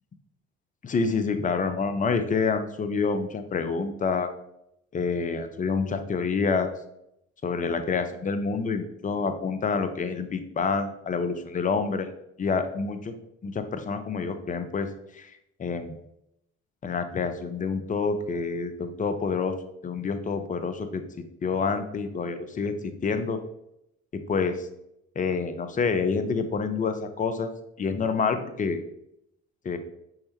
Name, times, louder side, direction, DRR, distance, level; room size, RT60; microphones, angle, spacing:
voice 1, 0.8-4.3 4.9-6.7 7.4-12.1 12.4-13.1 13.4-15.9 16.8-19.6 19.8-21.0 21.4-22.7 23.0-23.4 24.1-24.7 25.2-27.5 27.8-28.8 29.6-29.8, left 5 dB, 20° left, 9 dB, 0.6 m, -27 dB
5.6 x 3.2 x 2.8 m, 0.79 s
figure-of-eight pair, 55°, 39 cm